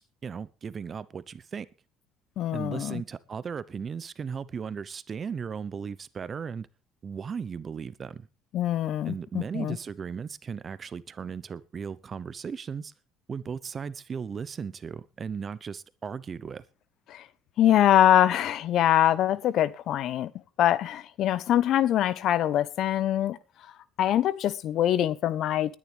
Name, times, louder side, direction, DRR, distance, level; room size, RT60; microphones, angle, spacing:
voice 1, 0.0-1.7 2.5-6.7 7.0-8.3 9.0-12.9 13.3-16.6, right 6 dB, 40° right, 0.9 m, -36 dB
voice 2, 2.4-3.0 8.5-9.8 17.1-17.2 17.6-20.3 20.6-23.4 24.0-25.7, left 11 dB, 60° left, 0.9 m, -24 dB
20.5 x 10.0 x 3.5 m
hypercardioid pair, 70°, 0 cm